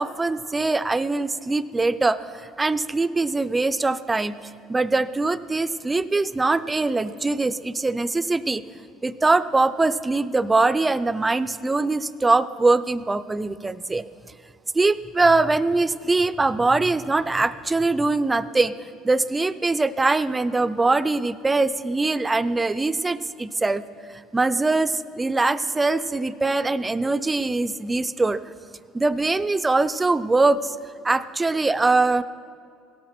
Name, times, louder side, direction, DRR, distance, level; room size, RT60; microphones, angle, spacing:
voice 1, 0.0-2.2 2.6-4.3 4.7-8.6 9.0-14.0 14.7-18.7 19.0-23.8 24.3-28.4 28.9-30.8 31.0-32.2, right 3 dB, 15° right, 13 dB, 0.5 m, -22 dB
17.0 x 13.0 x 5.9 m, 2.4 s
supercardioid pair, 110°, 0 cm